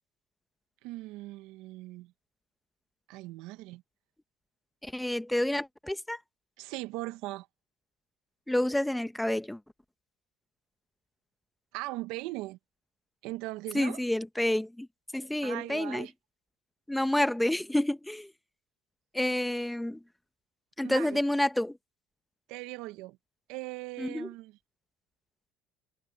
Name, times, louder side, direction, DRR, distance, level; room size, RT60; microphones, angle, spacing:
voice 1, 0.8-2.1 3.1-3.8 6.6-7.5 11.7-12.6 13.2-14.0 15.4-16.1 20.8-21.2 22.5-23.2 23.5-24.5, right 20 dB, 75° right, 1.1 m, -39 dB
voice 2, 4.8-6.2 8.5-9.6 13.7-14.9 15.1-16.1 16.9-18.3 19.1-20.0 20.8-21.8 24.0-24.3, left 1 dB, 5° left, 1.2 m, -29 dB
supercardioid pair, 95°, 0 cm